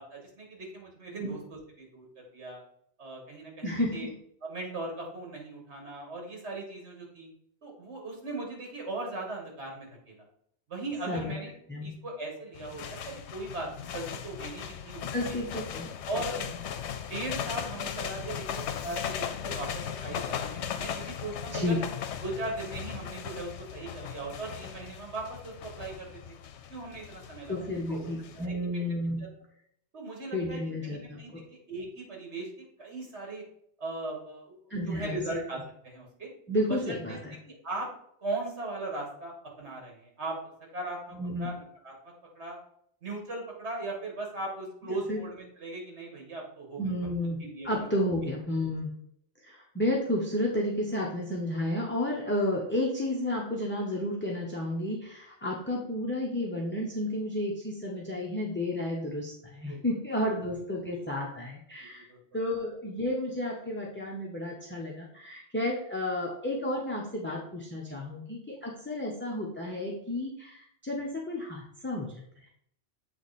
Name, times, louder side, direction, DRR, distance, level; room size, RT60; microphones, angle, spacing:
voice 1, 0.0-1.4 1.8-2.6 3.0-4.1 4.4-7.3 7.6-10.2 10.7-11.5 11.8-15.4 16.1-16.4 17.1-21.8 22.2-26.1 26.7-28.1 28.4-28.8 29.9-33.4 33.8-34.6 34.9-36.3 36.7-37.2 37.5-37.9 38.2-40.4 40.7-42.6 43.0-47.1 47.4-47.7 48.2-48.3 59.7-59.8 61.8-62.2 67.9-68.0, right 2 dB, 75° right, 0 dB, 2.0 m, -38 dB
voice 2, 3.6-4.0 11.1-11.3 11.7-11.9 15.1-16.0 21.5-21.8 27.5-29.3 30.3-31.4 34.7-35.2 36.5-37.4 41.1-41.5 45.1-45.2 46.8-48.9 49.4-62.1 62.3-72.5, left 1 dB, 10° left, -3 dB, 0.7 m, -32 dB
sound 1, 12.5-28.5, left 8 dB, 80° left, 0.9 m, -38 dB
7.6 x 3.3 x 4.1 m, 0.69 s
omnidirectional pair, 1.1 m